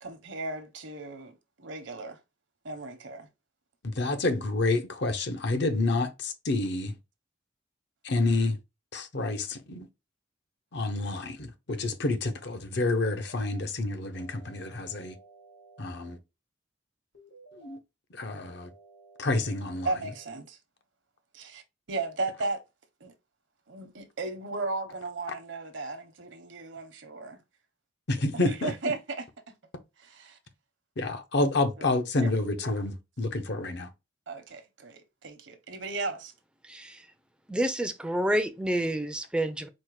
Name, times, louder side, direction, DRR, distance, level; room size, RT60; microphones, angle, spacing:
voice 1, 0.0-2.2 2.6-3.3 19.8-20.6 21.3-21.6 21.9-22.6 23.0-23.1 23.7-27.4 28.5-29.3 30.0-30.4 32.2-32.6 34.3-36.3, right 3 dB, 75° right, 0.9 m, -35 dB
voice 2, 3.8-6.9 8.0-8.6 8.9-9.9 10.7-15.1 15.8-16.2 17.5-17.8 18.1-18.7 19.2-19.9 28.1-28.7 31.0-33.9, left 2 dB, 60° left, 0.7 m, -28 dB
sound 1, 13.0-13.6 14.1-16.1 17.1-17.8 18.2-20.2, right 3 dB, 85° left, 2.0 m, -54 dB
voice 3, 36.6-37.1 37.5-39.7, right 1 dB, 5° right, 0.4 m, -29 dB
4.4 x 2.1 x 4.6 m
head